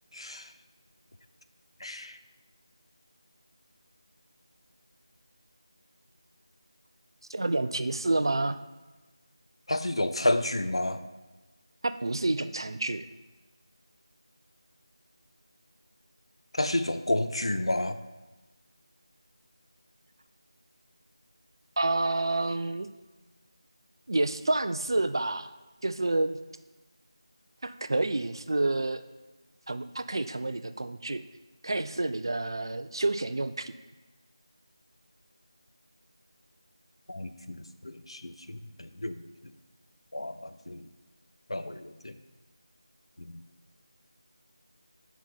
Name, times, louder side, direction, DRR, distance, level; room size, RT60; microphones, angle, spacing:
voice 1, 0.1-0.5 1.8-2.2 9.7-11.0 16.5-18.0 37.1-39.5 40.1-40.9 41.5-42.2 43.2-43.4, left 1 dB, 70° left, 10 dB, 0.5 m, -31 dB
voice 2, 7.3-8.6 11.8-13.1 21.8-22.9 24.1-25.5 25.8-26.4 27.6-29.0 29.7-31.2 31.6-33.7, right 2 dB, 50° right, 11 dB, 0.4 m, -29 dB
5.6 x 4.7 x 5.5 m, 1.2 s
figure-of-eight pair, 165°, 3 cm